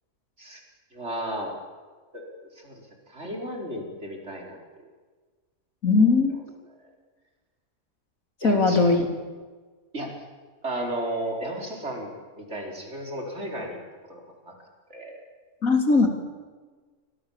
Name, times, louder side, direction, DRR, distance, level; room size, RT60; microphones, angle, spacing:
voice 1, 0.9-1.5 2.1-2.8 3.1-4.6 8.4-9.1 9.9-10.1 10.6-14.5 14.9-15.2, right 1 dB, 50° right, 1 dB, 5.3 m, -34 dB
voice 2, 5.8-6.3 8.4-9.1 15.6-16.1, left 3 dB, 70° left, 4 dB, 3.8 m, -19 dB
29.5 x 25.0 x 7.5 m, 1.4 s
omnidirectional pair, 1.5 m